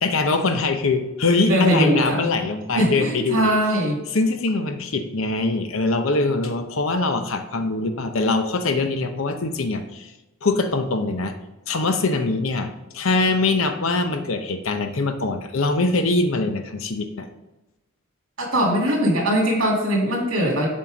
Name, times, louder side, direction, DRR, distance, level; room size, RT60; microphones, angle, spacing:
voice 1, 0.0-3.5 4.1-10.1 10.4-11.3 11.7-17.3, left 3 dB, 70° left, 7 dB, 0.8 m, -23 dB
voice 2, 1.4-2.3 2.7-4.0 18.4-20.7, equal, 70° right, -1 dB, 2.5 m, -21 dB
7.4 x 4.4 x 5.0 m, 1.0 s
head